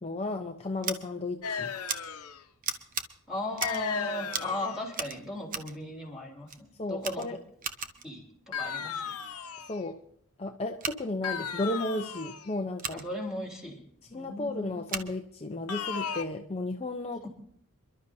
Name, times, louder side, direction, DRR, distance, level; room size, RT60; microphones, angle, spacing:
voice 1, 0.0-1.7 6.8-7.4 9.7-10.0 10.4-13.0 14.1-17.3, left 2 dB, 25° left, 3 dB, 0.7 m, -34 dB
Scissors, 0.8-1.0 1.9-2.0 2.6-3.1 3.5-3.9 4.3-4.6 4.9-5.8 6.5-6.6 7.0-8.1 10.7-11.0 12.8-13.0 14.9-15.1, right 6 dB, 40° right, 1.0 m, -36 dB
sound 1, 1.4-2.4 3.6-4.9 8.5-9.8 11.2-12.5 15.7-16.3, left 6 dB, 75° left, 1.0 m, -35 dB
voice 2, 3.3-7.4 8.0-9.1 12.9-13.8 14.1-14.9 17.2-17.3, left 1 dB, ahead, -1 dB, 3.6 m, -37 dB
28.0 x 12.0 x 2.7 m, 0.67 s
head